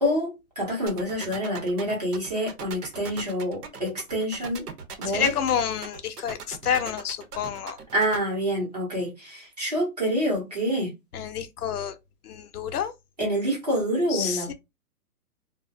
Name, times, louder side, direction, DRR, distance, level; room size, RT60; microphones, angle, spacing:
voice 1, 0.0-4.7 5.0-5.3 7.9-10.9 13.2-14.5, equal, 25° right, 0.7 m, -27 dB
sound 1, 0.9-8.2, right 6 dB, 80° right, 0.8 m, -39 dB
voice 2, 5.1-7.8 11.1-12.0 12.2-12.9 14.1-14.5, left 8 dB, 75° left, 0.6 m, -28 dB
2.3 x 2.1 x 2.5 m
hypercardioid pair, 175°, 46 cm